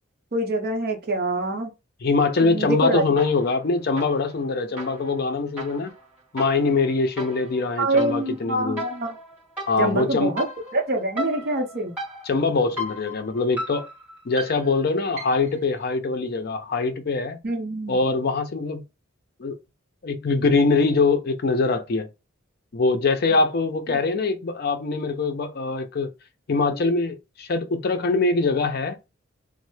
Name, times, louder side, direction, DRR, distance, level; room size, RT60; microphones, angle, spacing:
voice 1, 0.3-1.7 2.4-3.2 7.8-9.2 9.8-10.5 10.7-11.9 17.4-18.0 23.9-24.0, right 1 dB, 50° right, 0.8 m, -25 dB
voice 2, 2.0-5.9 6.3-8.8 9.7-10.4 12.3-13.9 14.3-17.4 17.9-18.8 19.4-19.6 20.0-22.1 22.7-26.1 26.5-29.0, left 3 dB, 50° left, 0.5 m, -23 dB
sound 1, 3.2-3.6 4.0-15.6, equal, 10° right, 1.8 m, -37 dB
3.1 x 2.0 x 3.1 m
head